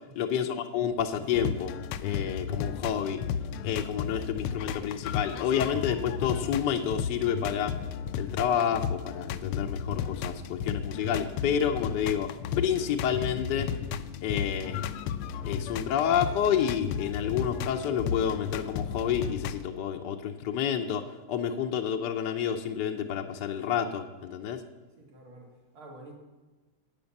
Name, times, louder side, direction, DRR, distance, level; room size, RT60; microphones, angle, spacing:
voice 1, 0.1-1.7 2.0-3.2 3.6-7.7 8.1-12.3 12.6-13.7 14.2-14.8 15.4-21.0 21.3-24.6, left 8 dB, 65° left, 5 dB, 1.1 m, -29 dB
sound 1, 1.2-19.6, left 7 dB, 80° left, 1.4 m, -34 dB
voice 2, 25.0-26.1, right 2 dB, 75° right, 0 dB, 3.1 m, -49 dB
10.5 x 8.6 x 7.1 m, 1.2 s
omnidirectional pair, 2.3 m